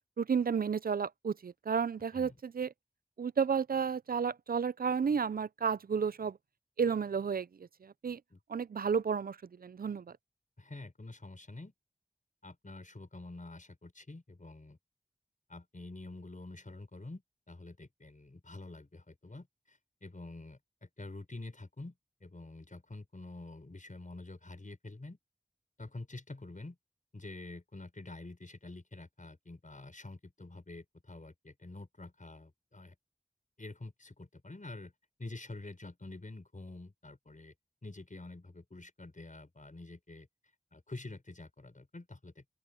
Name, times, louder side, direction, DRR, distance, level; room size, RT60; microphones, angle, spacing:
voice 1, 0.2-2.7 3.2-6.4 6.8-8.2 8.5-10.2, right 6 dB, 80° right, 0.4 m, -32 dB
voice 2, 10.6-11.7 12.4-14.8 15.5-17.2 17.5-25.2 25.8-26.8 27.1-33.0 33.6-34.9 35.2-37.5 37.8-40.3 40.7-42.5, left 2 dB, 60° left, 5.2 m, -47 dB
open air
wide cardioid pair, 40°, 15 cm